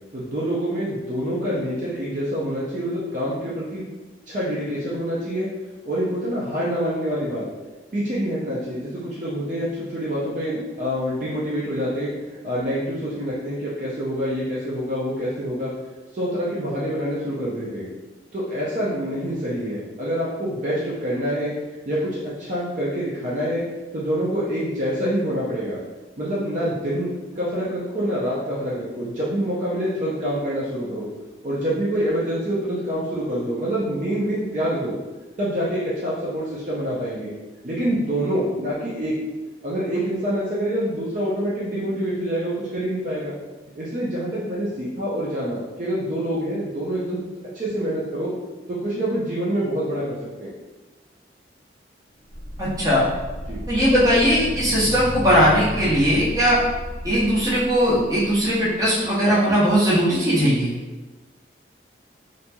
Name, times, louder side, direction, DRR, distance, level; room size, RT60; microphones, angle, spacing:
voice 1, 0.1-3.8 4.3-5.5 5.8-7.5 7.9-12.1 12.4-15.7 16.1-17.9 18.3-21.5 21.9-23.6 23.9-25.8 26.2-31.1 31.4-34.9 35.4-37.3 37.6-39.1 39.6-43.3 43.8-47.3 47.5-48.3 48.7-50.5 53.5-53.6, equal, 45° right, -8 dB, 0.5 m, -26 dB
sound 1, 52.3-58.5, equal, 70° left, 0.6 m, -33 dB
voice 2, 52.6-53.0 53.7-56.6 57.0-60.7, equal, 20° right, -9 dB, 0.8 m, -19 dB
2.9 x 2.6 x 2.2 m, 1.2 s
head